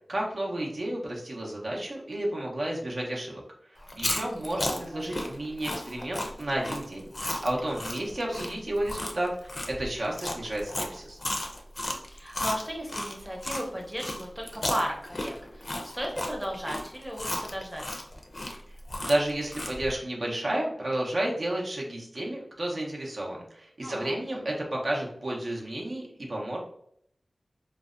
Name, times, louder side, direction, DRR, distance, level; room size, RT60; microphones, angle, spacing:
voice 1, 0.1-3.4 3.9-11.2 19.0-26.6, right 1 dB, 65° right, -2 dB, 0.6 m, -31 dB
Chewing mastication, 3.8-13.6 14.0-19.9, left 1 dB, 40° left, 0.4 m, -34 dB
voice 2, 4.2-5.3 12.1-18.0 23.8-24.4, equal, 10° right, -1 dB, 0.6 m, -36 dB
2.6 x 2.0 x 2.4 m, 0.69 s
wide cardioid pair, 75°, 0 cm